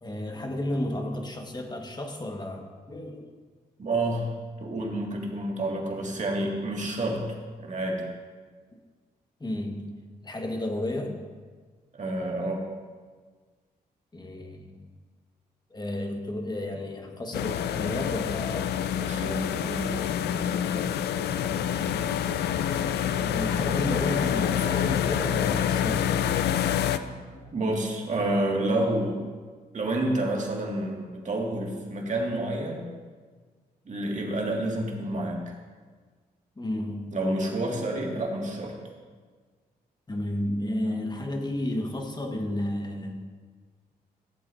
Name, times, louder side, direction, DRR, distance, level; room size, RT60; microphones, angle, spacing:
voice 1, 0.0-3.3 9.4-11.2 14.1-14.9 15.7-18.7 23.2-26.2 27.0-27.5 36.6-37.2 40.1-43.3, left 1 dB, 25° left, 3 dB, 1.5 m, -32 dB
voice 2, 3.8-4.3 4.6-7.2 7.6-8.0 12.0-12.6 19.0-20.1 21.4-21.5 27.5-29.2 29.7-32.9 33.9-35.5 37.1-38.8, right 1 dB, 45° right, -1 dB, 2.1 m, -29 dB
sound 1, 17.3-27.0, left 9 dB, 85° left, 0.4 m, -27 dB
15.0 x 7.7 x 2.7 m, 1.5 s
supercardioid pair, 60°, 17 cm